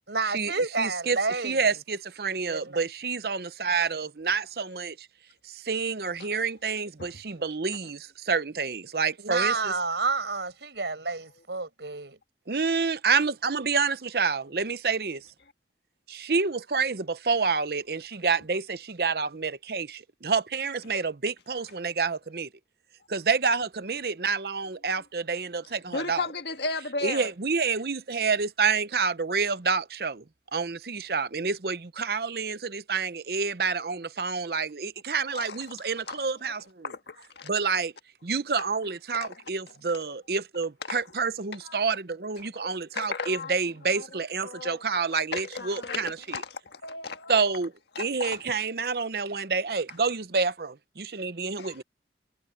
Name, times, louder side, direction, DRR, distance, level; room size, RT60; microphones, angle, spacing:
voice 1, 0.1-1.8 2.4-2.8 6.3-6.4 9.2-12.2, right 4 dB, 80° right, 5.1 m, -30 dB
voice 2, 0.8-1.2 1.4-4.9 5.5-9.7 12.5-15.2 16.1-22.5 23.1-26.3 27.0-30.2 30.5-36.6 37.4-37.9 38.2-46.4 47.3-47.7 48.0-51.8, right 5 dB, 60° right, 0.8 m, -28 dB
voice 3, 25.9-27.3 35.3-35.6 36.1-36.3 36.8-37.5 39.2-39.4 39.9-40.0 40.8-41.0 41.6-41.9 42.4-43.5 43.9-44.1 44.4-45.0 45.3-47.3 47.9-48.4 51.6-51.8, left 3 dB, 75° left, 1.6 m, -35 dB
head